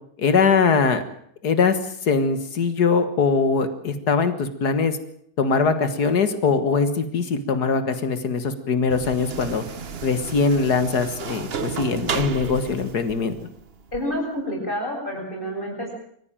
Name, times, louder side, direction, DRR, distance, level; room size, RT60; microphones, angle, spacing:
voice 1, 0.2-1.0 1.4-5.0 5.4-9.6 10.0-13.4, left 5 dB, 80° left, 10 dB, 2.2 m, -21 dB
sound 1, 8.9-14.0, right 6 dB, 45° right, 1.1 m, -33 dB
voice 2, 13.9-15.9, equal, 30° left, -1 dB, 8.2 m, -28 dB
24.0 x 15.0 x 9.0 m, 0.67 s
omnidirectional pair, 1.7 m